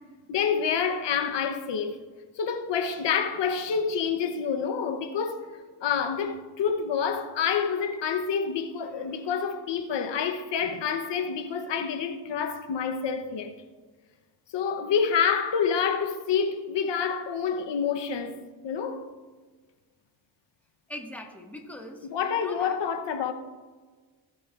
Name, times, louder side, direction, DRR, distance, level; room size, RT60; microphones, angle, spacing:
voice 1, 0.3-2.0 2.4-13.5 14.5-19.1 22.1-23.3, left 6 dB, 70° left, 0.9 m, -28 dB
voice 2, 20.9-22.1 22.4-22.8, left 1 dB, 5° left, 1.5 m, -41 dB
17.0 x 8.4 x 2.4 m
cardioid pair, 95°, 44 cm